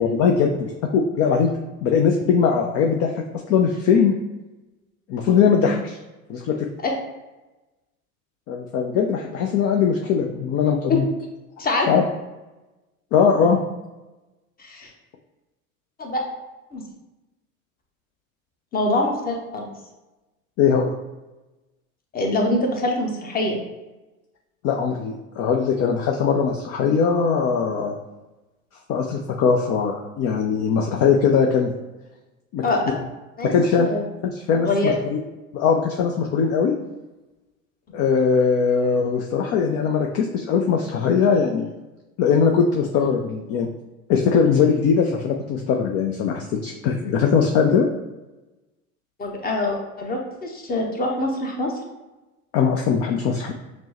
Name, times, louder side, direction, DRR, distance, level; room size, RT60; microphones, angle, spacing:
voice 1, 0.0-1.5 1.8-3.1 3.5-4.2 5.1-6.0 6.3-6.6 8.5-11.0 11.9-12.0 13.1-13.6 20.6-20.9 24.6-27.9 28.9-31.7 32.5-32.7 33.4-33.9 34.2-35.2 35.5-36.7 37.9-41.7 42.2-43.7 44.1-47.9 52.5-53.5, left 6 dB, 35° left, 2 dB, 0.4 m, -20 dB
voice 2, 14.6-14.9 16.0-16.2 16.7-16.8 18.7-19.7 22.1-23.6 32.6-32.8 33.4-33.5 33.8-34.0 34.6-34.9 49.2-51.7, left 2 dB, 20° left, 1 dB, 0.8 m, -24 dB
6.0 x 2.1 x 2.9 m, 1.1 s
hypercardioid pair, 85°, 42 cm